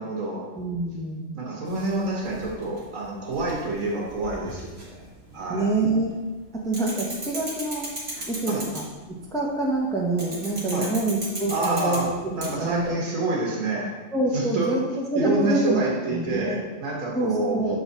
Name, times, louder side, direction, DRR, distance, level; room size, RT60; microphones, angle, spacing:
voice 1, 0.0-0.5 1.3-5.1 5.3-5.7 8.5-8.7 10.7-10.9 11.5-13.9 14.3-14.8 15.1-17.8, right 2 dB, 80° right, -2 dB, 1.7 m, -28 dB
voice 2, 0.5-1.3 5.5-6.1 6.5-7.9 8.3-8.8 9.3-12.9 14.1-16.6 17.1-17.8, right 2 dB, 5° left, -2 dB, 0.7 m, -26 dB
sound 1, 1.7-5.8 6.1-9.1 10.2-12.9, right 1 dB, 50° right, 1.7 m, -37 dB
6.7 x 4.1 x 4.0 m, 1.2 s
omnidirectional pair, 1.4 m